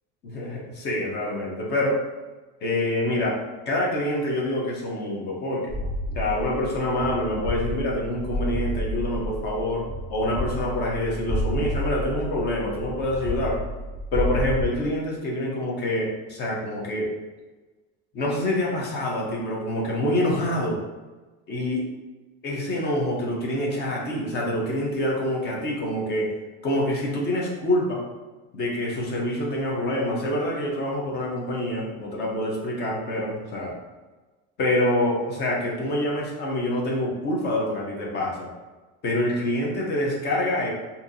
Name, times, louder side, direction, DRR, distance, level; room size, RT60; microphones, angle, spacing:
voice 1, 0.2-2.0 2.6-3.4 3.7-5.8 6.1-13.6 14.1-17.1 18.1-20.8 21.5-21.8 22.4-26.3 26.6-28.0 28.5-33.7 34.6-38.5 39.0-40.7, left 1 dB, 35° left, -3 dB, 0.9 m, -26 dB
sound 1, 5.7-14.7, equal, 70° left, 1.4 m, -30 dB
4.4 x 2.7 x 2.6 m, 1.2 s
cardioid pair, 165°, 29 cm